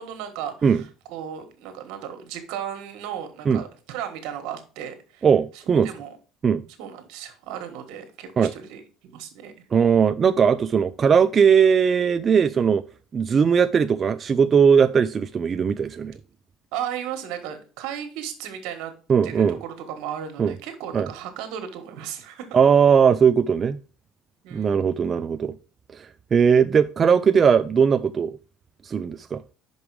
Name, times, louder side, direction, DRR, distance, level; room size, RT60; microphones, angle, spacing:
voice 1, 0.0-5.3 5.8-6.2 6.8-9.5 16.7-18.9 19.2-22.6 24.4-24.9, right 9 dB, 75° right, 1.4 m, -35 dB
voice 2, 5.2-5.9 6.4-6.6 8.4-8.5 9.7-12.8 13.1-16.2 19.1-19.6 20.4-20.5 20.9-21.1 22.5-23.8 24.5-25.5 25.9-28.4 28.8-29.4, right 6 dB, 30° right, 0.3 m, -19 dB
5.9 x 5.3 x 4.7 m
cardioid pair, 125°, 0 cm